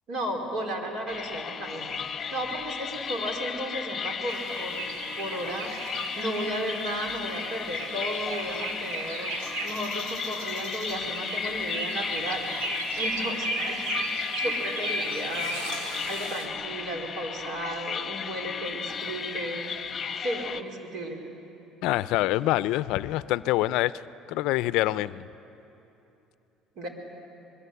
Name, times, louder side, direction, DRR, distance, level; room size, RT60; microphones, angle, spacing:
voice 1, 0.1-1.9 2.3-5.7 6.2-9.4 9.6-12.4 13.0-19.7 20.2-21.2 26.8-26.9, right 1 dB, 60° right, 2 dB, 4.5 m, -34 dB
sound 1, 1.1-20.6, left 6 dB, 30° left, 1.0 m, -35 dB
sound 2, 4.3-16.5, right 1 dB, 85° right, 3.7 m, -35 dB
voice 2, 21.8-23.9 24.3-25.2, left 16 dB, 75° left, 16 dB, 0.5 m, -25 dB
24.5 x 22.0 x 8.3 m, 3.0 s
cardioid pair, 115°, 0 cm